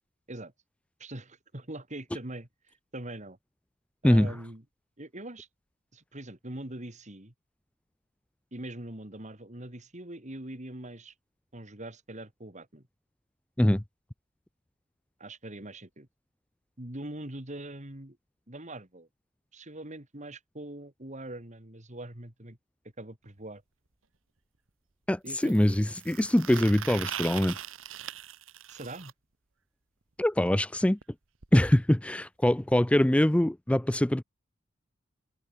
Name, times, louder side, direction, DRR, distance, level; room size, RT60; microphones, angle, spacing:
voice 1, 1.0-2.5 2.9-3.4 4.0-4.6 5.0-5.5 5.9-7.3 8.5-11.1 11.5-12.9 15.2-16.1 16.8-18.2 18.5-19.1 19.5-22.6 23.0-23.6 25.2-25.6 28.7-29.1, right 1 dB, 35° right, 3.1 m, -42 dB
sound 1, 23.2-23.3 25.3-29.1 31.0-31.1 31.4-31.5 31.8-31.9 32.8-32.9, right 9 dB, 75° right, 1.5 m, -40 dB
voice 2, 25.1-27.6 30.2-31.0 31.5-34.2, left 1 dB, 5° left, 0.4 m, -23 dB
open air
head